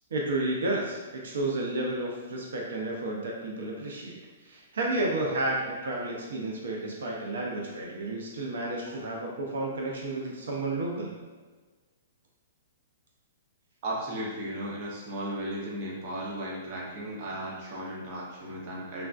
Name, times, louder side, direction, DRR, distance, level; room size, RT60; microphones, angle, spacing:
voice 1, 0.1-11.2, right 2 dB, 80° right, -1 dB, 0.5 m, -31 dB
voice 2, 13.8-19.1, right 1 dB, 35° right, -4 dB, 0.7 m, -35 dB
3.4 x 2.4 x 2.4 m, 1.4 s
hypercardioid pair, 160°, 0 cm